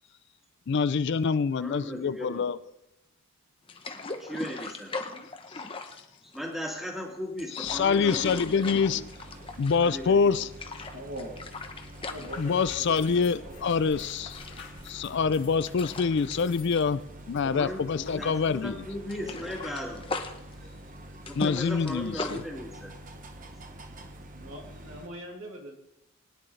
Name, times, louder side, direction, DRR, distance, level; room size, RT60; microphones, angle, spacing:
voice 1, 0.7-2.6 7.6-9.1 9.6-10.5 12.4-14.4 14.8-17.0 17.3-18.8 21.3-22.4, left 5 dB, 55° left, 15 dB, 0.4 m, -26 dB
voice 2, 1.6-2.5 4.2-4.9 6.2-8.7 9.8-10.3 17.4-17.8 18.1-20.1 21.3-22.9, equal, ahead, -1 dB, 2.2 m, -37 dB
sound 1, 3.7-6.7 7.2-10.1 10.3-13.2 13.5-13.7 14.1-17.9 18.1-18.3 18.6-22.4, left 3 dB, 25° left, 0.8 m, -40 dB
sound 2, 7.6-25.1, right 1 dB, 40° right, 1.0 m, -46 dB
voice 3, 10.9-11.3 11.9-14.0 24.3-25.8, equal, 70° right, -1 dB, 2.7 m, -42 dB
sound 3, 12.1-19.2 19.5-19.8, left 5 dB, 90° left, 2.8 m, -50 dB
20.5 x 10.5 x 3.3 m, 0.87 s
head